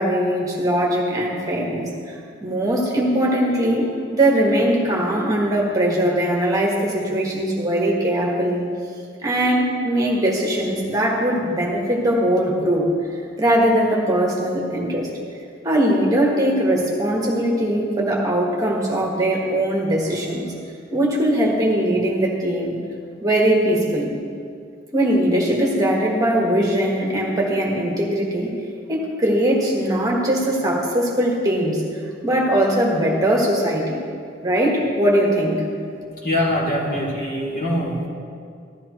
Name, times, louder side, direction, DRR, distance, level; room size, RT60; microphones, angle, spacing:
voice 1, 0.0-2.1 2.4-8.7 9.2-12.8 13.4-15.1 15.6-20.6 20.9-22.8 23.2-24.2 24.9-28.5 28.9-31.8 32.2-34.0 34.4-35.7, right 1 dB, 20° right, -2 dB, 1.5 m, -20 dB
voice 2, 36.2-38.1, left 1 dB, 50° left, -5 dB, 2.7 m, -23 dB
14.5 x 13.0 x 3.2 m, 2.3 s
head